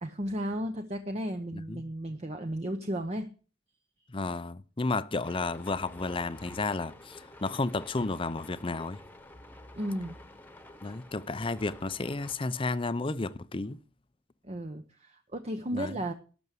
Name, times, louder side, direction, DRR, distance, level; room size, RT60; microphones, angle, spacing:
voice 1, 0.0-3.3 9.8-10.1 14.4-16.1, equal, 30° right, 0.9 m, -34 dB
voice 2, 1.5-1.8 4.1-9.0 10.8-13.8 15.7-16.0, left 3 dB, 25° left, 0.6 m, -32 dB
sound 1, 5.2-12.4, left 1 dB, 10° left, 1.2 m, -50 dB
12.5 x 6.1 x 8.2 m
head